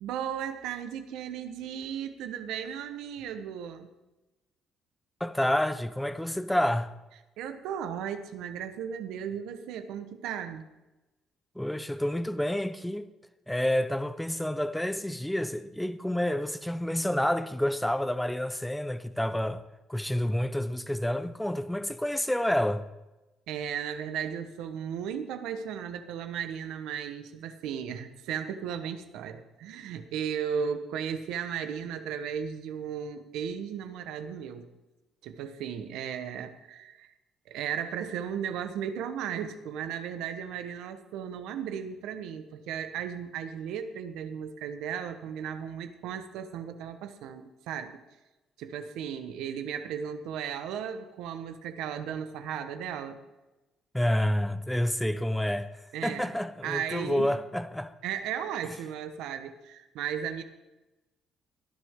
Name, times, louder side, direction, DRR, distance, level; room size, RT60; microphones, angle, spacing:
voice 1, 0.0-3.9 7.4-10.6 23.5-34.7 35.2-37.1 37.5-48.0 48.6-53.2 55.9-56.3 56.6-57.3 58.0-60.4, right 8 dB, 80° right, 1.2 m, -35 dB
voice 2, 5.2-6.9 11.5-13.1 13.5-19.6 19.9-22.8 53.9-55.7 56.0-57.9, left 1 dB, 5° left, 0.9 m, -29 dB
18.0 x 11.0 x 3.8 m
supercardioid pair, 70°, 0 cm